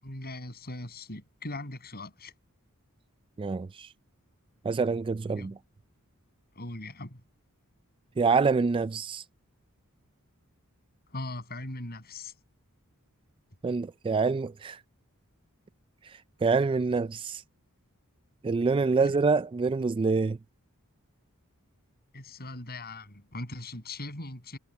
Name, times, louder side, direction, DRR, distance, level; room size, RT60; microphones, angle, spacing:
voice 1, 0.0-2.3 5.3-5.6 6.5-7.2 11.1-12.3 18.7-19.1 22.1-24.6, left 2 dB, 45° left, 8.0 m, -40 dB
voice 2, 3.4-3.9 4.6-5.6 8.2-9.2 13.6-14.8 16.0-17.4 18.4-20.4, right 4 dB, 25° right, 0.3 m, -26 dB
head